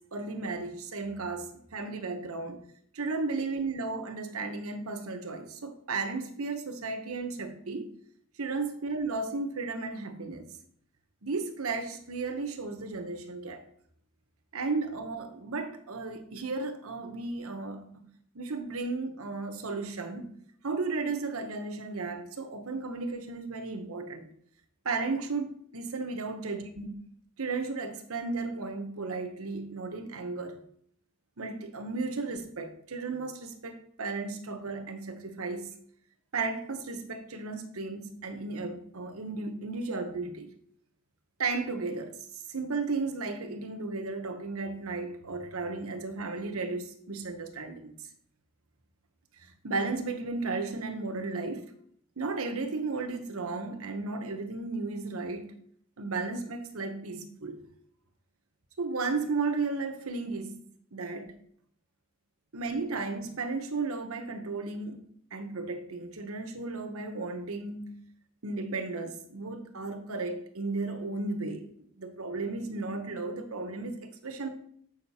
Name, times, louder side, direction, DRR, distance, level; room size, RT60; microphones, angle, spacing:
voice 1, 0.1-2.6 2.9-7.9 8.4-10.5 11.2-13.6 14.5-18.0 18.3-20.3 20.6-24.3 24.8-27.0 27.4-30.6 31.4-35.7 36.3-40.5 41.4-42.2 42.5-47.9 49.6-51.7 52.2-55.5 56.0-57.7 58.8-60.6 60.9-61.3 62.5-65.0 65.3-68.0 68.4-71.7 72.0-74.5, right 3 dB, 85° right, 1.1 m, -34 dB
7.2 x 6.5 x 4.2 m
head